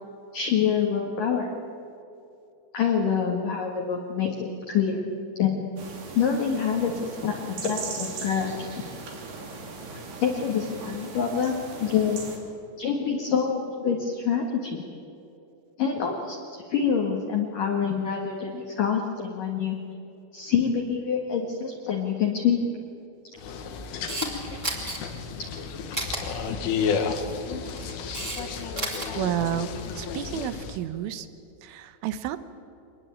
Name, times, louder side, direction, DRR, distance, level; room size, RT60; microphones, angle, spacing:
voice 1, 0.3-1.5 2.7-5.0 5.4-5.5 6.1-8.7 9.9-12.2 12.8-14.8 15.8-19.8 20.3-22.6 24.5-24.6 24.8-24.9, left 7 dB, 55° left, 0 dB, 2.8 m, -26 dB
sound 1, 5.8-12.4, right 4 dB, 55° right, 4.9 m, -39 dB
sound 2, 23.4-30.8, left 5 dB, 75° left, 4.2 m, -32 dB
Camera, 23.8-24.3 24.6-25.0 25.9-26.2 27.5-28.4 28.7-29.1, right 1 dB, 15° right, 3.7 m, -31 dB
voice 2, 29.2-29.7 30.0-31.3 31.6-32.4, right 12 dB, 80° right, 12 dB, 3.6 m, -30 dB
25.0 x 21.0 x 8.9 m, 2.8 s
omnidirectional pair, 5.7 m